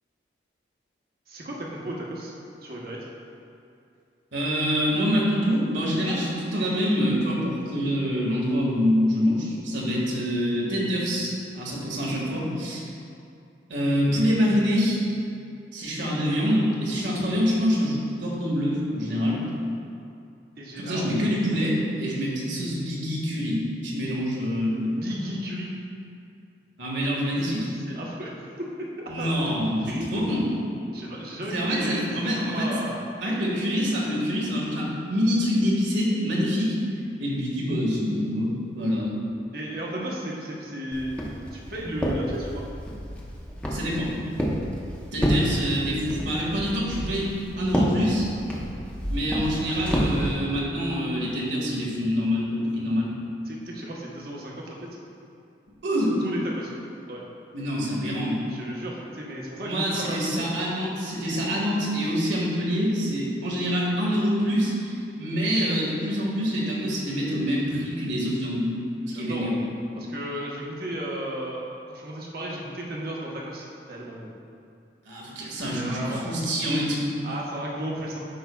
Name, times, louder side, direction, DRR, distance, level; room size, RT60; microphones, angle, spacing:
voice 1, 1.3-2.3 2.6-3.1 20.6-21.1 24.8-25.7 27.9-30.1 30.9-33.0 39.5-41.2 41.5-42.6 53.5-54.9 56.2-56.7 57.1-57.2 58.5-60.5 69.0-69.5 70.0-71.6 71.9-74.3 75.7-76.4 77.2-78.2, right 1 dB, 55° right, -3 dB, 1.1 m, -34 dB
voice 2, 4.3-12.9 13.7-15.0 15.7-19.4 20.8-25.0 26.8-27.7 29.1-30.5 31.5-32.7 33.2-36.8 37.2-39.1 43.7-44.1 45.1-47.3 47.6-48.2 49.1-53.1 55.8-56.2 57.5-58.4 59.6-68.7 69.1-69.6 75.1-77.2, equal, 85° right, -4 dB, 1.8 m, -26 dB
Walk footsteps, 40.9-50.3, equal, 5° left, 0.8 m, -29 dB
12.5 x 5.6 x 2.3 m, 2.5 s
head